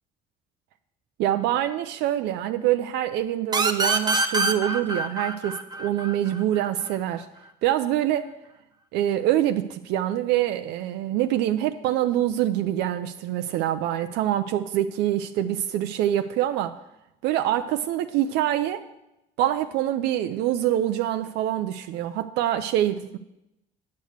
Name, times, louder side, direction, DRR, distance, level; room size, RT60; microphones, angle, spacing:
voice 1, 1.2-7.3 7.6-8.3 8.9-16.7 17.2-18.8 19.4-23.2, right 12 dB, 90° right, 8 dB, 0.5 m, -25 dB
sound 1, 3.5-6.9, right 3 dB, 25° right, 0.8 m, -25 dB
9.3 x 6.7 x 6.5 m, 0.90 s
cardioid pair, 110°, 17 cm